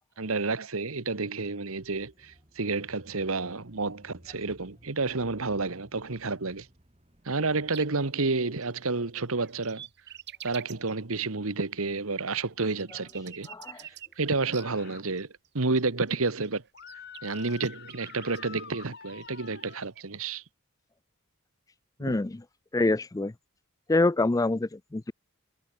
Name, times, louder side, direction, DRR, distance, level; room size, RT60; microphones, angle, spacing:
voice 1, 0.2-6.7 7.2-9.9 10.4-13.5 13.8-15.3 15.5-16.6 17.2-20.4 22.0-22.1, right 3 dB, 70° right, 1.4 m, -30 dB
Bicycle / Mechanisms, 1.7-7.9, equal, 30° right, 2.8 m, -57 dB
sound 1, 7.7-7.8 8.1-11.3 11.6-14.6 15.2-15.5 15.8-15.9 16.1-16.2 16.4-18.4 19.2-20.0, right 11 dB, 50° right, 2.7 m, -47 dB
voice 2, 13.5-13.9 22.0-22.4 22.7-23.3 23.9-25.1, left 2 dB, 15° left, 0.4 m, -26 dB
sound 2, 14.5-15.0 16.7-19.9, left 7 dB, 50° left, 6.9 m, -47 dB
head